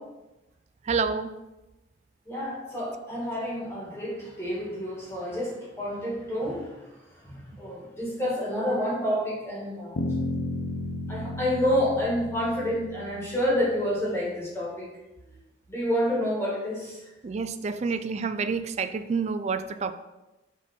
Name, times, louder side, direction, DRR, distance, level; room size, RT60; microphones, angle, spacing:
voice 1, 0.9-1.3 17.2-19.9, right 5 dB, 35° right, 11 dB, 0.3 m, -28 dB
voice 2, 2.3-6.6 7.2-9.9 11.1-14.9 15.7-17.0, equal, 15° left, -6 dB, 2.0 m, -28 dB
sound 1, 10.0-13.9, left 2 dB, 90° left, 0.5 m, -34 dB
5.8 x 4.7 x 4.3 m, 1.0 s
head